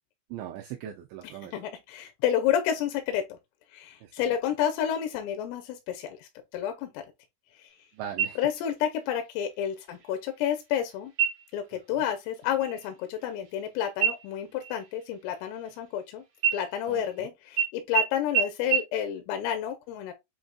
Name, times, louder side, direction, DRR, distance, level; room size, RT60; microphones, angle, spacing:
voice 1, 0.3-1.5 4.0-4.3 7.9-8.4 11.7-11.8 16.9-17.3, right 10 dB, 90° right, 2.6 m, -40 dB
voice 2, 1.5-3.2 3.7-7.0 7.6-7.7 8.4-11.1 11.5-16.2 16.5-20.1, left 10 dB, 90° left, 3.2 m, -30 dB
sound 1, 8.2-8.8 9.2-9.3 9.9-10.4 11.1-11.6 12.0-12.3 12.6-13.7 14.0-16.0 16.4-17.2 17.6-17.7 17.9-18.0 18.3-18.4 18.7-18.8, right 8 dB, 65° right, 1.8 m, -29 dB
7.9 x 2.6 x 2.3 m
omnidirectional pair, 5.8 m